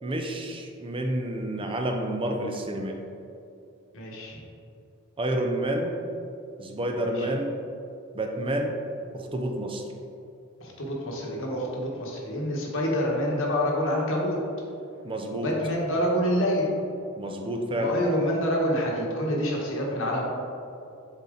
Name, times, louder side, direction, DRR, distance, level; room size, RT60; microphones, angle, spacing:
voice 1, 0.0-3.0 5.2-6.0 6.6-7.6 8.1-8.7 9.1-9.8 15.0-15.5 17.2-18.0, right 1 dB, 25° right, 3 dB, 0.5 m, -29 dB
voice 2, 3.9-4.4 7.0-7.4 10.6-14.4 15.3-16.7 17.8-20.2, equal, 65° left, -2 dB, 1.3 m, -27 dB
7.1 x 4.2 x 3.8 m, 2.6 s
head